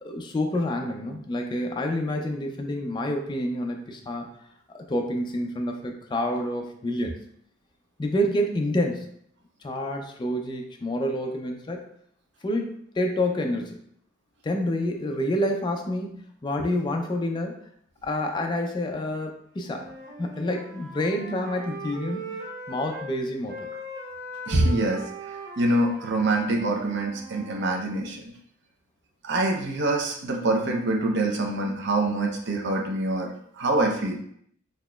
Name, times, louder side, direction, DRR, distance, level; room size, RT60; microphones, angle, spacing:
voice 1, 0.0-4.3 4.7-7.2 8.0-9.1 9.6-11.9 12.4-13.8 14.4-17.6 18.0-19.9 20.2-22.4 22.7-23.7, left 1 dB, 20° left, 3 dB, 0.3 m, -28 dB
Wind instrument woodwind instrument, 19.6-23.1 23.5-27.7, right 2 dB, 40° right, 1.2 m, -39 dB
voice 2, 24.5-25.0 25.6-28.2 29.2-34.2, right 2 dB, 55° right, 1 dB, 0.6 m, -25 dB
4.1 x 2.8 x 2.2 m, 0.69 s
head